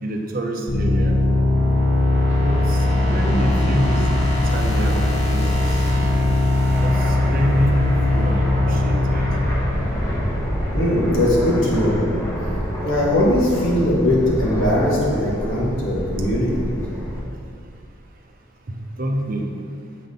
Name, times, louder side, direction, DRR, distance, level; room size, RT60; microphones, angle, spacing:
voice 1, 0.0-1.2 2.3-5.8 6.8-9.2 18.7-19.5, right 1 dB, 40° right, 2 dB, 0.6 m, -27 dB
sound 1, 0.7-10.5, left 2 dB, 35° left, 0.9 m, -20 dB
Fixed-wing aircraft airplane, 2.1-17.2, equal, 15° left, 1.1 m, -28 dB
voice 2, 10.7-12.0 12.8-16.7, left 1 dB, 65° left, -4 dB, 1.7 m, -20 dB
7.5 x 3.9 x 5.5 m, 2.3 s
head